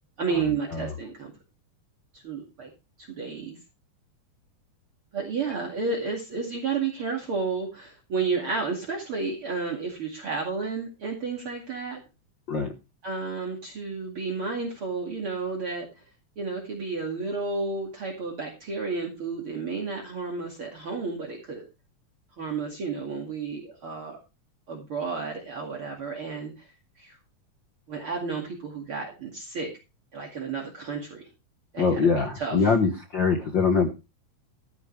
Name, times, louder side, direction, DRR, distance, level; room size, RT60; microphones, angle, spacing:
voice 1, 0.2-1.3 2.1-2.7 3.0-3.6 5.1-12.0 13.0-15.9 16.4-21.6 22.4-24.2 24.7-26.7 27.0-27.2 27.9-29.7 30.1-31.3 31.7-32.7, right 4 dB, 45° right, 2 dB, 2.9 m, -32 dB
voice 2, 31.8-33.9, left 5 dB, 55° left, 5 dB, 1.4 m, -23 dB
13.5 x 10.5 x 3.3 m, 0.28 s
omnidirectional pair, 3.7 m